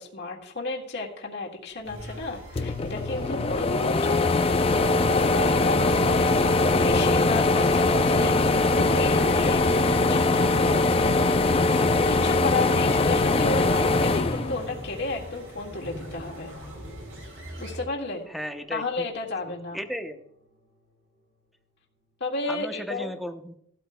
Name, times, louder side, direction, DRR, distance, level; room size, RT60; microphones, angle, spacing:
voice 1, 0.0-11.2 12.1-16.5 17.6-18.3 18.7-19.8 22.2-23.1, left 3 dB, 55° left, -1 dB, 1.8 m, -33 dB
sound 1, 1.8-17.8, right 1 dB, 85° right, 4.6 m, -41 dB
sound 2, 2.2-2.3 2.6-15.2 15.6-16.7, left 3 dB, 30° left, 0.3 m, -22 dB
sound 3, 9.4-22.3, left 1 dB, 60° right, 4.8 m, -52 dB
voice 2, 18.3-19.1 19.5-20.2 22.5-23.6, equal, ahead, 6 dB, 0.7 m, -35 dB
16.0 x 12.5 x 2.2 m, 0.72 s
head